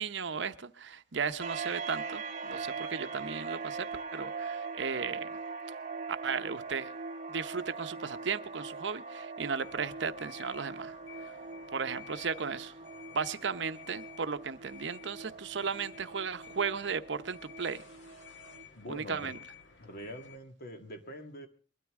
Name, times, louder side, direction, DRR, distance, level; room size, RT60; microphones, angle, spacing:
voice 1, 0.0-5.3 6.1-6.9 7.3-11.3 11.7-12.7 13.1-17.8 18.9-19.4, right 5 dB, 70° right, 0.7 m, -35 dB
sound 1, 1.4-18.6, right 4 dB, 40° right, 1.1 m, -42 dB
sound 2, 9.6-20.4, left 8 dB, 85° left, 1.9 m, -54 dB
voice 2, 18.7-19.4 19.8-21.5, equal, 55° left, 1.9 m, -44 dB
21.5 x 13.0 x 3.6 m
head